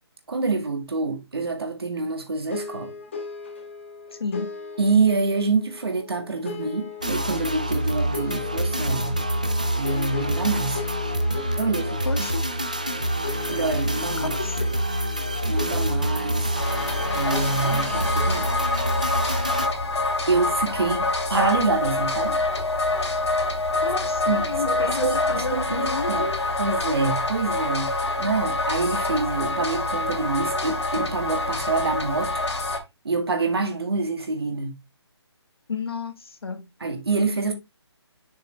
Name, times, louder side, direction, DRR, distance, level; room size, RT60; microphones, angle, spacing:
voice 1, 0.3-2.9 4.8-9.2 9.8-10.8 11.6-12.3 13.5-14.4 15.4-16.5 17.1-18.5 20.3-22.4 24.3-32.3 33.0-34.8 36.8-37.5, right 4 dB, 65° right, 2.0 m, -26 dB
sound 1, 2.5-18.9, left 5 dB, 25° left, 1.4 m, -39 dB
sound 2, 7.0-19.7, equal, 15° right, 0.3 m, -27 dB
voice 2, 12.0-12.4 14.2-14.8 23.8-26.3 35.7-36.6, left 4 dB, 60° left, 1.7 m, -32 dB
sound 3, 16.5-32.8, left 2 dB, 75° left, 2.7 m, -26 dB
6.5 x 5.8 x 3.3 m
hypercardioid pair, 175°, 14 cm